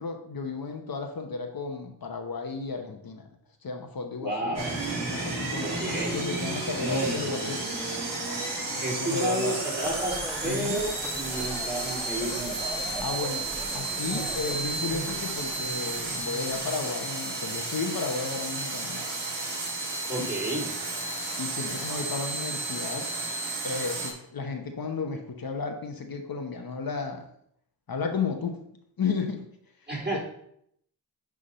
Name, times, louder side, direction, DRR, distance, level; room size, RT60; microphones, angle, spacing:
voice 1, 0.0-3.3 3.6-4.6 5.1-7.6 8.7-9.6 10.4-10.8 13.0-19.0 20.2-20.3 21.4-23.1 23.6-27.3 27.9-28.6 29.0-29.4 30.1-30.2, left 5 dB, 55° left, 4 dB, 1.0 m, -33 dB
voice 2, 4.2-4.8 5.6-6.2 6.8-7.5 8.8-12.7 20.1-20.7 29.9-30.2, right 1 dB, 25° right, -4 dB, 3.5 m, -31 dB
sound 1, 4.5-24.1, right 2 dB, 50° right, 3.2 m, -32 dB
sound 2, 9.8-17.0, right 1 dB, ahead, 1.2 m, -40 dB
10.0 x 3.6 x 5.5 m, 0.71 s
wide cardioid pair, 115°, 42 cm